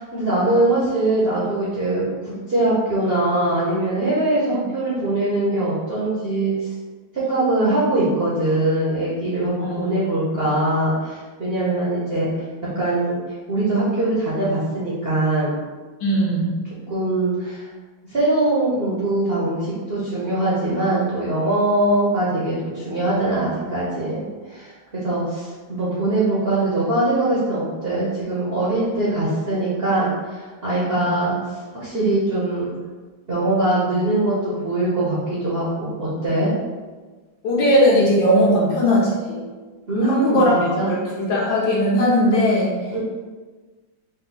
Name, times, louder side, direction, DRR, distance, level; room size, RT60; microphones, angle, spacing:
voice 1, 0.0-6.5 7.1-13.2 13.5-15.5 16.9-17.6 18.1-32.7 33.3-36.5 38.5-38.7 39.9-40.9 42.9-43.0, right 2 dB, 45° right, -9 dB, 0.8 m, -22 dB
voice 2, 9.6-9.9 16.0-16.5 30.9-31.2 37.4-39.4 40.0-40.5 40.9-42.7, equal, 75° left, -4 dB, 1.7 m, -19 dB
4.2 x 2.3 x 4.0 m, 1.3 s
omnidirectional pair, 2.1 m